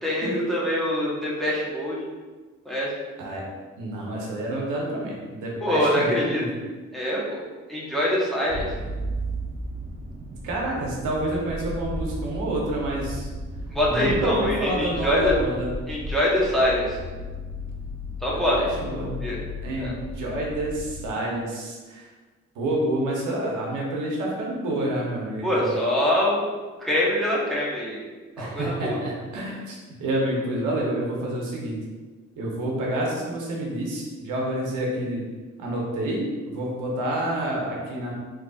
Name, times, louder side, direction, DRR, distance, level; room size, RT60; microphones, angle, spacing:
voice 1, 0.0-2.1 2.6-2.9 5.6-6.4 6.9-7.4 7.7-8.7 13.7-15.4 15.9-17.0 18.2-18.6 19.2-19.4 19.8-19.9 25.4-26.4 26.8-28.0 28.4-29.0, left 1 dB, ahead, -6 dB, 1.0 m, -24 dB
voice 2, 3.8-6.5 10.4-13.3 13.9-15.7 18.6-19.4 19.6-22.1 22.5-25.7 28.4-31.7 32.4-35.2 35.6-38.1, right 1 dB, 90° right, -3 dB, 1.0 m, -28 dB
sound 1, 8.5-21.1, equal, 30° right, 0.5 m, -34 dB
3.9 x 3.0 x 2.4 m, 1.3 s
cardioid pair, 90°, 30 cm